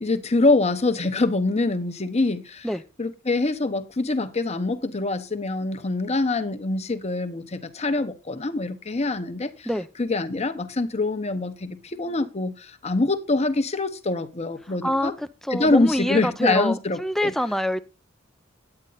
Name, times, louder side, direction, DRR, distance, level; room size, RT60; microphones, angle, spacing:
voice 1, 0.0-2.7 3.0-9.7 10.0-15.1 15.5-17.3, left 2 dB, 35° left, 1.0 m, -24 dB
voice 2, 15.4-17.8, equal, ahead, 0.5 m, -25 dB
9.9 x 8.9 x 4.0 m
head